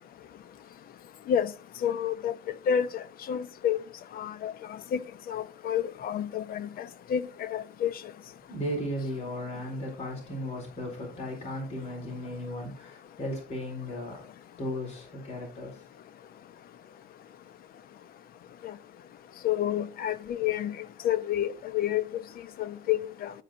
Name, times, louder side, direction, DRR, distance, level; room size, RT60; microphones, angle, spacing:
voice 1, 1.8-2.3 2.7-3.8 4.2-4.5 4.9-5.0 5.3-6.8 7.1-7.9 19.4-20.8 21.0-22.2 22.6-23.3, left 9 dB, 60° left, 0.8 m, -29 dB
voice 2, 8.5-14.2 14.6-15.8, equal, 40° left, 4.6 m, -36 dB
12.5 x 5.5 x 3.8 m
cardioid pair, 110°, 17 cm